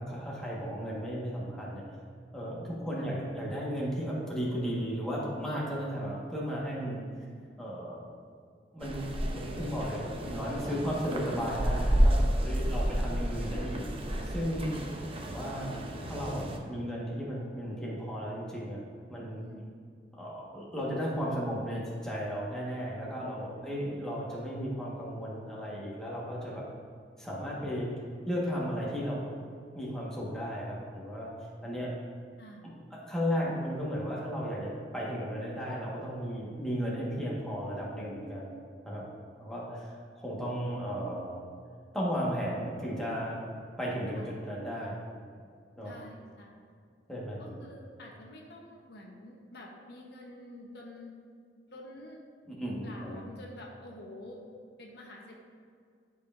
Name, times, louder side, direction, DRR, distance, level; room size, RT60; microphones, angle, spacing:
voice 1, 0.0-1.8 2.3-7.0 7.6-8.1 8.7-9.0 9.3-13.9 14.2-14.7 15.2-15.7 16.1-18.8 19.1-19.4 20.1-26.7 27.2-27.9 28.3-29.3 29.7-31.3 31.6-31.9 33.1-38.5 38.8-39.0 39.4-41.4 41.9-43.5 43.8-45.0 45.8-45.9 47.1-47.6 52.5-53.2, equal, 5° left, -6 dB, 1.5 m, -35 dB
sound 1, 8.8-16.6, equal, 30° right, 0.7 m, -31 dB
voice 2, 19.4-19.7 32.4-32.7 44.1-44.3 45.8-46.6 47.4-51.1 51.7-52.2 52.8-54.4 54.8-55.4, left 1 dB, 65° left, -1 dB, 1.0 m, -48 dB
11.0 x 5.5 x 2.6 m, 2.2 s
head